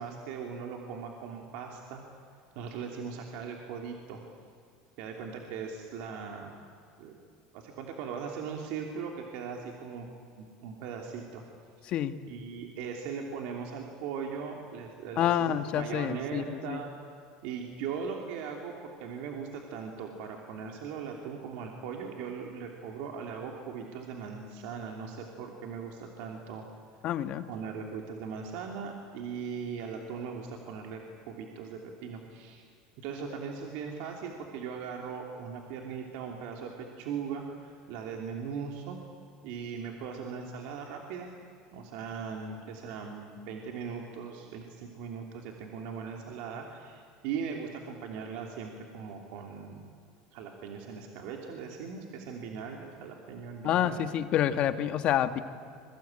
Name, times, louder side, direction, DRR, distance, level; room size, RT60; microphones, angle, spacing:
voice 1, 0.0-2.0 2.5-4.2 5.0-6.6 7.0-7.1 7.5-10.1 10.4-11.4 12.2-16.9 17.4-26.6 27.5-31.0 31.3-32.6 33.0-39.0 39.4-41.3 41.7-49.9 50.3-54.0, right 6 dB, 70° right, 2 dB, 3.0 m, -39 dB
voice 2, 11.8-12.1 15.2-16.8 27.0-27.5 53.6-55.4, left 11 dB, 50° left, 10 dB, 1.6 m, -28 dB
26.0 x 23.0 x 9.0 m, 2.4 s
supercardioid pair, 115°, 2 cm